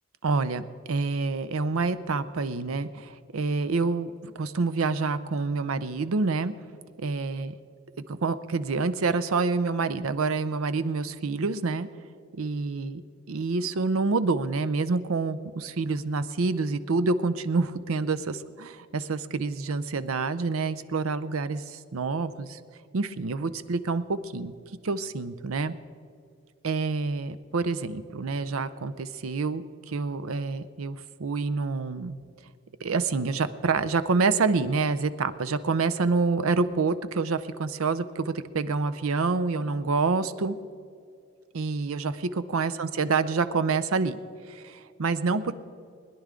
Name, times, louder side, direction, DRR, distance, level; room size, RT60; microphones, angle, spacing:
voice 1, 0.2-6.5 7.0-7.5 8.1-11.9 12.3-13.0 13.3-22.6 22.9-24.5 24.8-25.7 26.6-32.2 32.8-40.6 41.5-44.2 44.5-45.5, right 4 dB, 85° right, 13 dB, 0.6 m, -27 dB
21.0 x 10.5 x 3.7 m, 2.3 s
head